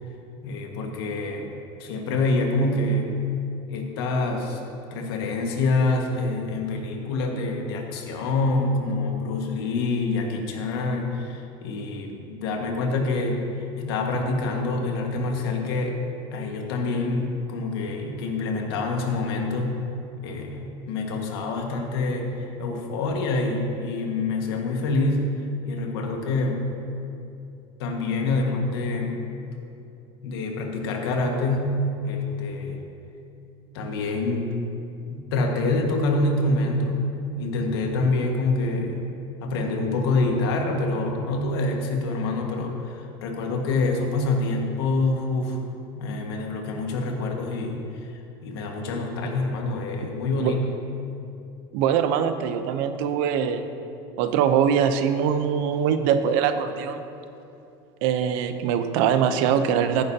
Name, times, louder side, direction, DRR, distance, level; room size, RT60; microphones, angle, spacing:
voice 1, 0.4-1.5 1.8-3.1 3.7-4.6 4.9-13.4 13.8-16.0 16.3-19.8 20.2-25.3 25.6-26.7 27.8-29.2 30.2-32.8 33.7-34.6 35.1-39.0 39.4-45.6 46.0-47.8 48.4-50.6, left 2 dB, 90° left, 1 dB, 1.7 m, -26 dB
voice 2, 51.7-53.6 54.2-57.0 58.0-60.0, right 8 dB, 65° right, 9 dB, 0.8 m, -22 dB
14.0 x 10.5 x 2.9 m, 2.7 s
cardioid pair, 145°, 13 cm